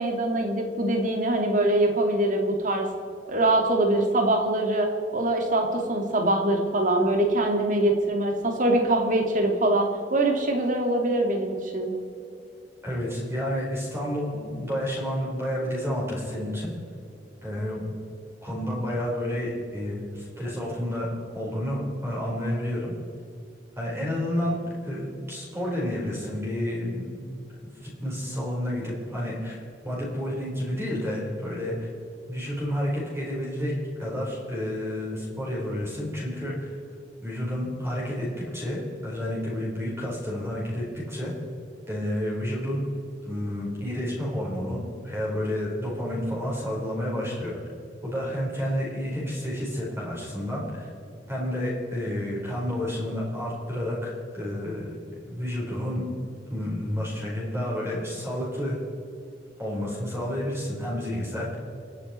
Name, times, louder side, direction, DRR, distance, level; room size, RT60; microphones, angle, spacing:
voice 1, 0.0-2.9 3.3-4.9 5.1-11.9, right 1 dB, 45° right, 2 dB, 2.5 m, -23 dB
voice 2, 12.8-16.7 17.4-18.0 18.4-21.1 21.3-22.9 23.8-24.6 24.8-27.2 27.6-29.6 29.8-31.9 32.3-33.7 34.0-36.8 37.2-41.3 41.9-42.8 43.2-47.6 48.0-50.9 51.3-54.9 55.3-56.0 56.5-58.8 59.6-61.5, equal, 15° right, -5 dB, 4.5 m, -30 dB
28.5 x 9.7 x 4.4 m, 2.6 s
head